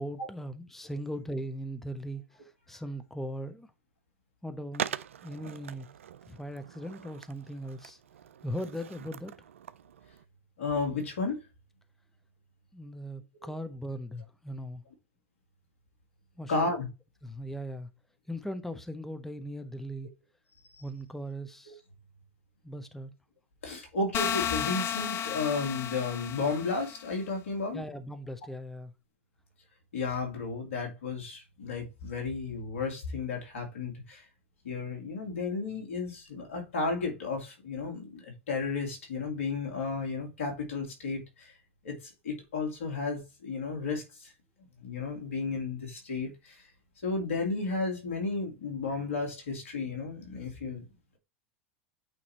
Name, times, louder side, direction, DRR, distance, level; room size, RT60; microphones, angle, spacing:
voice 1, 0.0-3.7 4.4-4.9 5.2-5.9 6.3-8.0 8.4-9.3 12.7-14.8 16.4-16.7 17.2-17.9 18.3-20.1 20.8-21.8 22.6-23.1 27.7-28.9, equal, 5° left, 0.8 m, -39 dB
Skateboard, 4.7-10.2, right 9 dB, 85° right, 0.4 m, -42 dB
voice 2, 10.6-11.4 16.5-16.9 20.7-20.8 23.6-27.8 29.9-34.2 34.6-41.5 41.8-44.3 44.8-46.7 47.0-50.8, left 4 dB, 80° left, 2.8 m, -33 dB
sound 1, 24.1-27.0, left 10 dB, 35° left, 0.6 m, -33 dB
8.7 x 2.9 x 4.3 m
hypercardioid pair, 95°, 7 cm